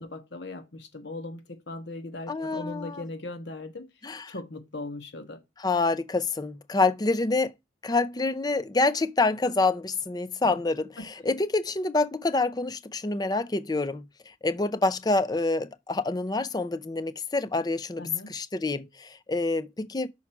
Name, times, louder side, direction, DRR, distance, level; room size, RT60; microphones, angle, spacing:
voice 1, 0.0-3.9 4.3-5.4 10.4-10.6 11.0-11.1 18.0-18.3, left 2 dB, 60° left, 1.2 m, -39 dB
voice 2, 2.3-3.0 4.0-4.3 5.6-7.5 7.8-14.0 14.4-20.1, left 3 dB, 20° left, 0.4 m, -27 dB
6.0 x 4.6 x 4.5 m
head